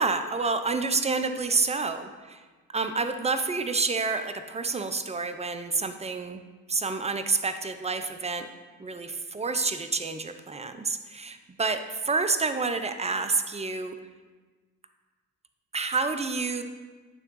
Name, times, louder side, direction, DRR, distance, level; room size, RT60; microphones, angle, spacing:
voice 1, 0.0-2.4 2.7-6.4 6.7-8.5 8.8-13.9 15.7-16.6, right 4 dB, 15° right, 9 dB, 0.6 m, -28 dB
9.1 x 3.6 x 5.4 m, 1.3 s
hypercardioid pair, 45°, 39 cm